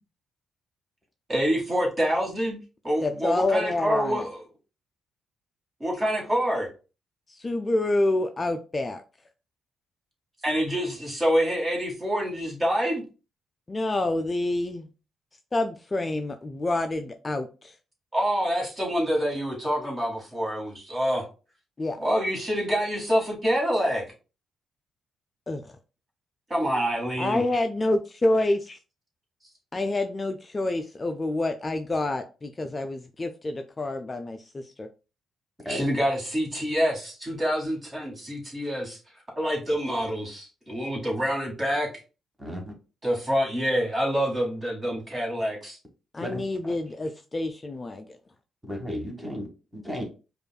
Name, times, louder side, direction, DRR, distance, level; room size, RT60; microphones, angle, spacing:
voice 1, 1.3-2.6 2.8-4.4 5.8-6.7 10.4-13.0 18.1-21.2 22.0-24.0 26.5-27.4 35.7-39.0 39.3-41.9 43.0-45.8, equal, 25° right, 1.7 m, -26 dB
voice 2, 3.0-4.3 7.3-9.0 13.7-14.9 15.5-17.7 21.8-22.0 25.5-25.7 27.2-28.8 29.7-34.9 46.1-48.1, left 2 dB, 25° left, 0.3 m, -27 dB
voice 3, 42.4-42.7 46.2-46.4 48.6-50.0, equal, 5° right, 1.2 m, -34 dB
5.0 x 2.4 x 2.2 m
cardioid pair, 100°, 0 cm